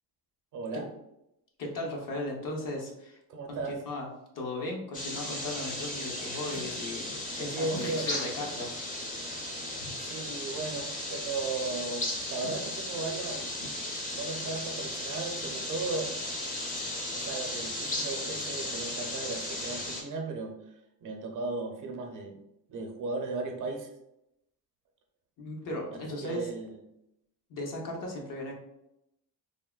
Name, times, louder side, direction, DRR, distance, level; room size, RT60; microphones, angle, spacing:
voice 1, 0.5-0.9 3.3-3.8 7.5-8.1 10.0-13.5 14.1-16.1 17.1-20.7 21.0-22.3 22.7-23.9 26.2-26.8, right 3 dB, 55° right, 3 dB, 0.6 m, -36 dB
voice 2, 1.6-3.2 3.5-4.1 4.3-8.8 25.4-26.5 27.5-28.5, left 1 dB, 55° left, 0 dB, 0.9 m, -36 dB
sound 1, 4.9-20.0, left 1 dB, 20° left, 0.6 m, -36 dB
sound 2, 5.8-6.9 7.3-7.4 7.7-9.0 9.2-10.2 10.6-11.4 12.0-13.1 13.5-14.2 14.5-15.3 16.0-16.1, equal, 85° left, 1.3 m, -48 dB
3.4 x 2.1 x 2.3 m, 0.84 s
cardioid pair, 110°, 38 cm